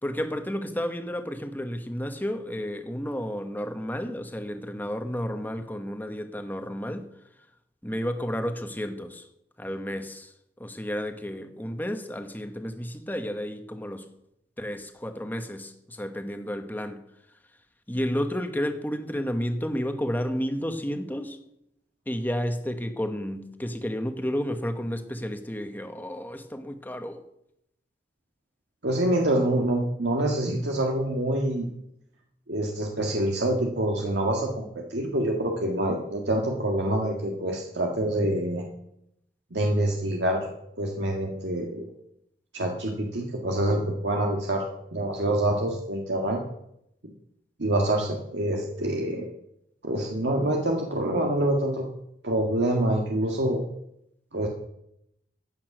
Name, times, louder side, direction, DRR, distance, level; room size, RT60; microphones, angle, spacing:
voice 1, 0.0-7.1 7.8-9.3 9.6-14.1 14.6-17.0 17.9-21.4 22.1-27.2, equal, 10° left, 1.2 m, -31 dB
voice 2, 28.8-31.7 32.5-38.7 39.5-40.5 40.8-41.9 42.5-46.4 47.6-49.3 49.8-51.9 52.2-53.6 54.3-54.5, right 1 dB, 85° right, 1.7 m, -26 dB
15.5 x 8.6 x 6.1 m
head